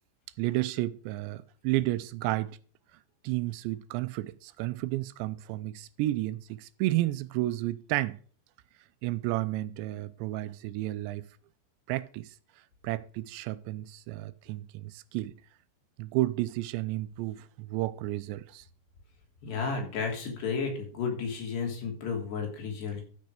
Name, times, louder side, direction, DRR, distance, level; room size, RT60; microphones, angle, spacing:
voice 1, 0.4-2.6 3.2-8.2 9.0-11.3 11.9-12.3 12.8-15.3 16.0-18.6 19.5-19.6, right 17 dB, 85° right, 2.9 m, -32 dB
voice 2, 19.4-23.0, left 5 dB, 70° left, 5.3 m, -32 dB
13.5 x 6.6 x 5.0 m
omnidirectional pair, 5.0 m